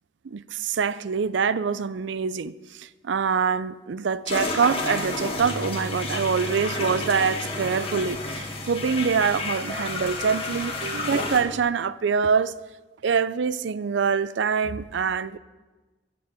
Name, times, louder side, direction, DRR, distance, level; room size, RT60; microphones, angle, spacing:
voice 1, 0.2-12.5 13.0-15.4, right 6 dB, 75° right, 0.4 m, -25 dB
sound 1, 4.2-11.4, left 2 dB, 30° left, 1.8 m, -31 dB
Bass guitar, 5.4-11.6, equal, 45° right, 2.2 m, -41 dB
14.5 x 6.9 x 7.7 m
head